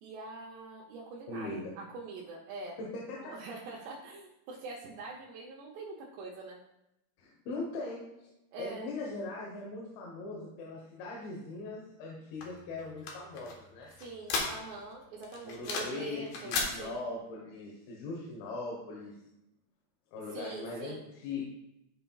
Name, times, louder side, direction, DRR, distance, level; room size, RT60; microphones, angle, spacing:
voice 1, 0.0-2.8 3.2-6.6 8.5-8.9 14.0-17.0 20.3-21.0, right 3 dB, 75° right, -3 dB, 2.8 m, -44 dB
voice 2, 1.3-1.7 2.8-3.3 7.2-8.3 8.6-13.9 15.4-19.2 20.1-21.4, left 2 dB, 85° left, -2 dB, 3.5 m, -40 dB
sound 1, 12.4-14.9 15.2-16.0 16.3-16.7, left 4 dB, 65° left, 2.8 m, -35 dB
13.0 x 5.6 x 2.3 m, 0.88 s
omnidirectional pair, 5.1 m